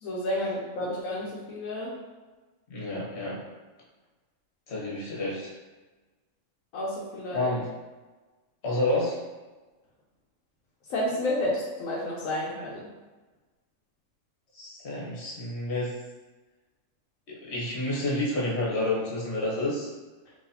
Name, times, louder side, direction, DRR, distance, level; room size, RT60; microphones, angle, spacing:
voice 1, 0.0-1.9 6.7-7.5 10.9-12.9, left 1 dB, 80° left, -5 dB, 1.1 m, -30 dB
voice 2, 2.7-3.4 4.7-5.5 7.3-7.7 8.6-9.2 14.5-15.9 17.3-19.9, left 1 dB, 55° left, -5 dB, 1.3 m, -29 dB
3.9 x 3.1 x 2.7 m, 1.2 s
omnidirectional pair, 1.4 m